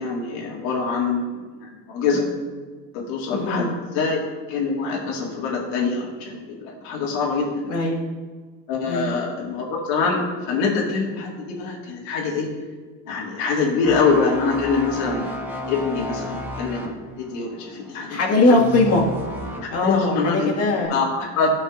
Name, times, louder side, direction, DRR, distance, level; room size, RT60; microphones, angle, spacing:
voice 1, 0.0-2.2 2.9-4.2 4.5-7.6 8.7-12.5 13.1-15.4 15.7-18.6 19.8-20.5 20.9-21.5, left 4 dB, 80° left, -2 dB, 2.0 m, -24 dB
voice 2, 3.3-3.8 7.7-8.1 8.9-9.1 18.1-19.0 19.7-21.0, left 2 dB, 45° left, -4 dB, 1.9 m, -20 dB
sound 1, 13.8-19.8 20.2-20.5, equal, 5° right, 1.2 m, -33 dB
12.5 x 5.3 x 2.5 m, 1.4 s
supercardioid pair, 105°, 34 cm